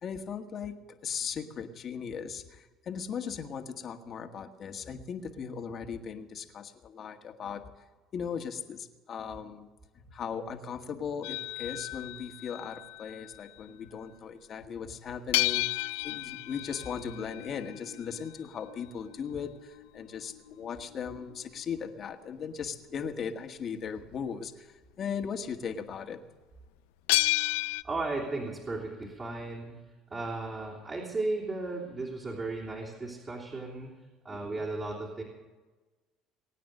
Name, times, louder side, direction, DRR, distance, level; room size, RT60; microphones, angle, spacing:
voice 1, 0.0-7.9 8.1-9.7 10.0-26.2 34.3-34.7, left 7 dB, 45° left, 6 dB, 1.6 m, -38 dB
sound 1, 11.2-13.5 15.3-22.0 27.1-27.8, left 20 dB, 90° left, 0.4 m, -33 dB
voice 2, 27.8-29.8 30.1-33.9 34.2-35.2, right 2 dB, 30° right, -3 dB, 3.2 m, -35 dB
22.0 x 9.2 x 6.7 m, 1.3 s
supercardioid pair, 100°, 0 cm